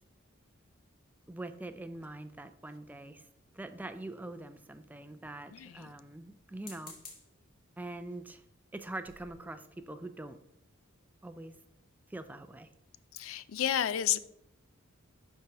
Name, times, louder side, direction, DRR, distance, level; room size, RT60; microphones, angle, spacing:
voice 1, 1.3-3.3 3.5-6.9 7.8-8.4 8.7-10.4 11.2-11.5 12.1-12.7, right 2 dB, 10° right, 0.3 m, -43 dB
sound 1, 3.8-4.6 6.5-7.4 8.1-8.3 8.7-8.8 9.0-9.3, left 3 dB, 45° left, 1.9 m, -52 dB
voice 2, 5.5-5.9 13.1-14.2, left 10 dB, 80° left, 0.4 m, -31 dB
11.5 x 4.6 x 2.9 m
head